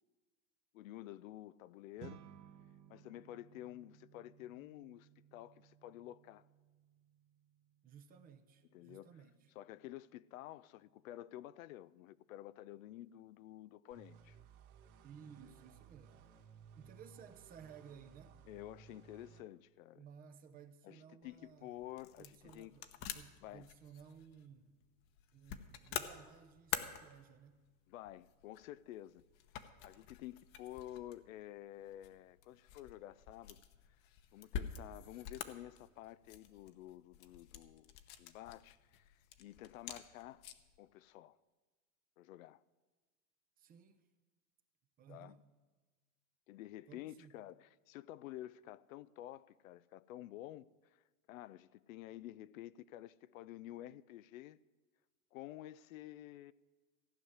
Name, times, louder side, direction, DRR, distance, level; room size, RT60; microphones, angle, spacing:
voice 1, 0.7-2.2 2.9-6.5 8.7-9.1 9.6-14.4 18.5-20.0 20.8-22.7 23.4-23.7 27.9-29.2 29.8-34.0 34.3-40.5 40.8-41.4 42.2-42.6 45.1-45.4 46.5-51.0 51.3-54.6 55.3-56.5, left 14 dB, 65° left, 0.5 m, -51 dB
sound 1, 2.0-11.5, right 11 dB, 40° right, 0.9 m, -62 dB
voice 2, 7.8-9.5 15.0-16.3 16.8-18.4 20.0-21.7 22.2-24.7 25.3-27.6 43.6-44.0 45.0-45.4 46.9-47.4, right 7 dB, 20° right, 0.6 m, -57 dB
sound 2, 13.9-19.4, right 7 dB, 70° right, 2.1 m, -60 dB
sound 3, 21.2-40.8, left 9 dB, 40° left, 1.0 m, -49 dB
15.5 x 6.3 x 9.6 m
supercardioid pair, 140°, 44 cm